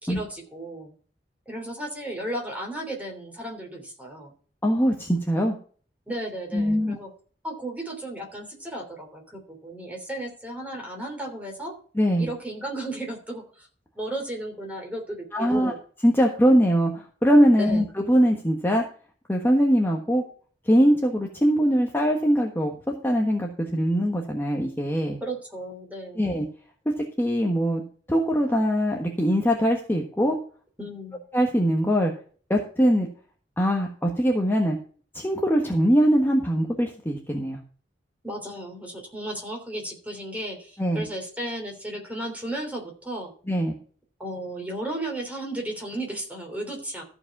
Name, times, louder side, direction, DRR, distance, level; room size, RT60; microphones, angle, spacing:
voice 1, 0.0-0.9 1.5-4.3 6.1-7.1 7.4-11.7 12.2-13.7 13.9-15.8 17.6-17.8 25.2-26.3 30.8-31.2 38.2-43.3 44.2-47.0, right 1 dB, 10° right, 1 dB, 3.2 m, -34 dB
voice 2, 4.6-5.6 6.5-7.0 11.9-12.3 15.3-15.7 16.0-18.8 19.3-20.2 20.6-25.2 26.2-26.5 26.8-27.8 28.1-30.4 31.3-32.1 32.5-33.1 33.6-34.8 35.1-37.6 40.8-41.1 43.5-43.8, equal, 15° left, 0 dB, 1.3 m, -22 dB
14.0 x 5.0 x 6.0 m, 0.43 s
head